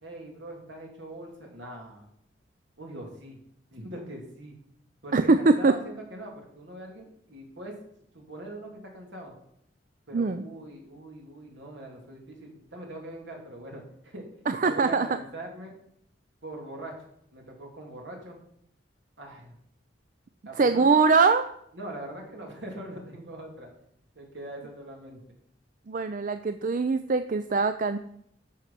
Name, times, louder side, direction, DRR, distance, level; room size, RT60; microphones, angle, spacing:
voice 1, 0.0-2.1 2.8-3.4 3.7-4.6 5.0-7.8 8.1-9.3 10.1-14.3 14.6-15.8 16.4-16.9 17.3-18.4 19.2-19.6 20.4-21.0 21.7-23.7 24.1-25.2, right 1 dB, 70° right, 0 dB, 3.2 m, -42 dB
voice 2, 5.1-5.7 10.1-10.4 14.5-15.1 20.6-21.5 25.9-28.0, right 4 dB, 45° right, 10 dB, 0.5 m, -22 dB
11.5 x 6.6 x 5.9 m, 0.72 s
head